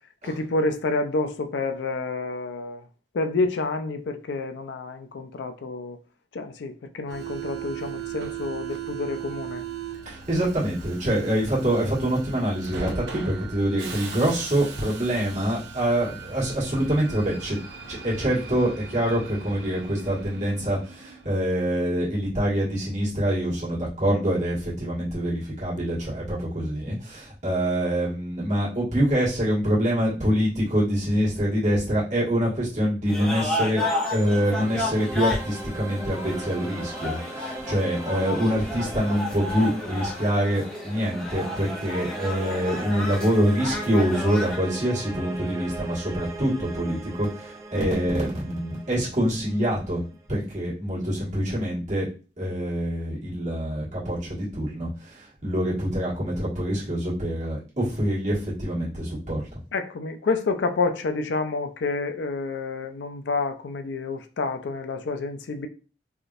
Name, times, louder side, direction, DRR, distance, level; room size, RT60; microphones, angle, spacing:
voice 1, 0.2-2.8 3.1-6.0 6.3-9.6 59.7-65.7, left 3 dB, 90° left, 0.4 m, -28 dB
Subway metro underground, 7.1-21.4, right 7 dB, 85° right, 0.6 m, -38 dB
voice 2, 10.0-17.6 17.9-33.8 34.1-50.0 50.3-52.1 52.4-59.4, equal, 45° right, 1.5 m, -25 dB
sound 1, 33.1-44.6, left 2 dB, 5° left, 0.9 m, -32 dB
sound 2, 33.5-50.5, right 2 dB, 15° right, 0.4 m, -40 dB
3.5 x 2.6 x 2.4 m
head